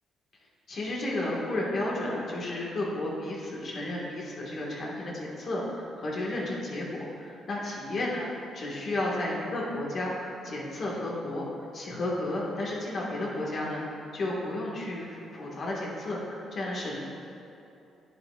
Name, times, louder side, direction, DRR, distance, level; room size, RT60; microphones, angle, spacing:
voice 1, 0.7-8.2 8.5-11.4 11.7-17.0, left 1 dB, 55° left, -4 dB, 1.7 m, -32 dB
10.5 x 7.9 x 2.4 m, 2.8 s
cardioid pair, 90°, 0 cm